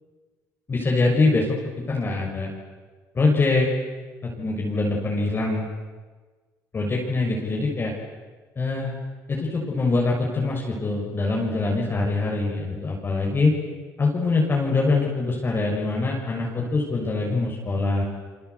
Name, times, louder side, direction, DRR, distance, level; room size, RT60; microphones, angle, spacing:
voice 1, 0.7-1.5 1.9-2.5 3.1-3.7 4.4-5.7 6.7-7.9 8.6-8.9 9.3-13.5 14.0-18.0, left 3 dB, 30° left, -2 dB, 6.5 m, -23 dB
30.0 x 24.0 x 8.4 m, 1.4 s
cardioid pair, 95°, 7 cm